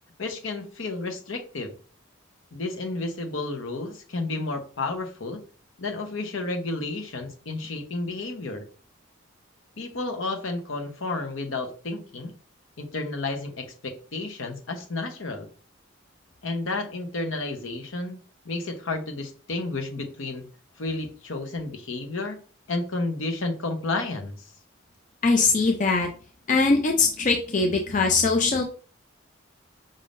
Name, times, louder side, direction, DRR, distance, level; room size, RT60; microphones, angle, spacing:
voice 1, 0.2-1.7 2.5-5.4 5.8-8.6 9.8-12.3 12.8-15.5 16.4-18.2 18.4-20.4 20.8-22.4 22.7-24.5, left 2 dB, 75° left, 5 dB, 1.0 m, -31 dB
voice 2, 25.2-26.1 26.5-28.6, left 3 dB, 35° left, 3 dB, 0.5 m, -21 dB
5.4 x 3.6 x 2.5 m, 0.39 s
head